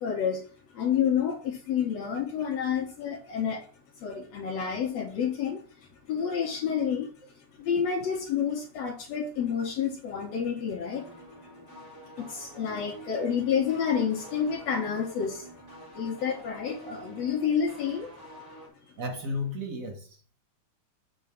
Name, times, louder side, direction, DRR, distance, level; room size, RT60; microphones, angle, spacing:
voice 1, 0.0-0.4 0.7-3.7 4.0-5.6 5.9-11.1 12.2-15.5 15.9-18.1, left 7 dB, 65° left, 2.1 m, -29 dB
sound 1, 10.9-18.7, right 1 dB, 20° right, 2.3 m, -48 dB
voice 2, 19.0-20.4, left 2 dB, 45° right, 1.1 m, -34 dB
7.9 x 5.3 x 3.6 m
omnidirectional pair, 3.5 m